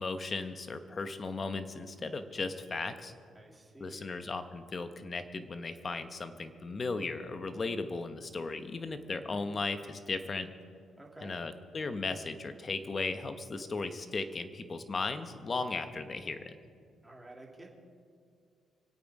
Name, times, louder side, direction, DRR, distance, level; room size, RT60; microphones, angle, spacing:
voice 1, 0.0-3.1 3.8-10.5 11.2-16.5, left 3 dB, 35° left, 9 dB, 1.2 m, -36 dB
voice 2, 3.3-4.2 11.0-11.4 17.0-17.7, right 2 dB, 10° right, -1 dB, 2.7 m, -51 dB
25.0 x 8.7 x 4.9 m, 2.2 s
cardioid pair, 90°, 0 cm